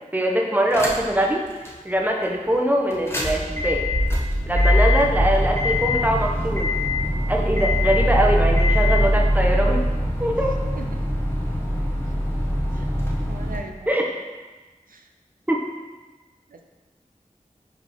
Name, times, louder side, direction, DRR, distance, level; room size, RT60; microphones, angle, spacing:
voice 1, 0.1-1.4 1.8-3.8 4.5-6.7 7.3-9.8 10.2-10.5 13.9-14.0 15.5-15.6, right 1 dB, 10° right, 0 dB, 1.0 m, -22 dB
sound 1, 0.7-1.2 1.6-1.7 2.9-13.6, left 1 dB, 15° left, 1.2 m, -22 dB
voice 2, 13.3-13.9 14.9-15.1 16.5-16.6, right 3 dB, 90° right, 4 dB, 0.5 m, -39 dB
5.0 x 4.2 x 5.0 m, 1.2 s
wide cardioid pair, 45°, 14 cm